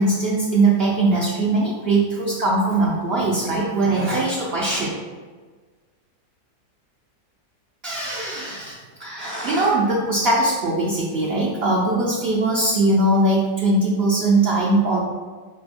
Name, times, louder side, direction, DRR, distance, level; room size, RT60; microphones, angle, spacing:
voice 1, 0.0-4.9 7.8-15.0, right 2 dB, 65° right, -4 dB, 0.6 m, -21 dB
4.6 x 3.6 x 2.5 m, 1.4 s
omnidirectional pair, 1.7 m